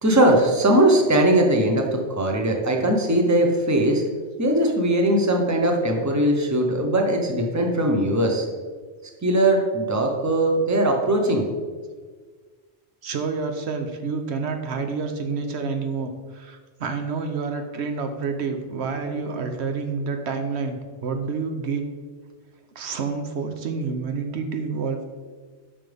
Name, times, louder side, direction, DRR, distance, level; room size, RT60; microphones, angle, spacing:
voice 1, 0.0-4.0 4.4-8.5 9.2-11.4, right 1 dB, 15° right, 2 dB, 0.9 m, -20 dB
voice 2, 13.0-21.8 22.7-25.0, right 5 dB, 80° right, 5 dB, 1.1 m, -28 dB
10.0 x 6.0 x 3.5 m, 1.5 s
omnidirectional pair, 1.1 m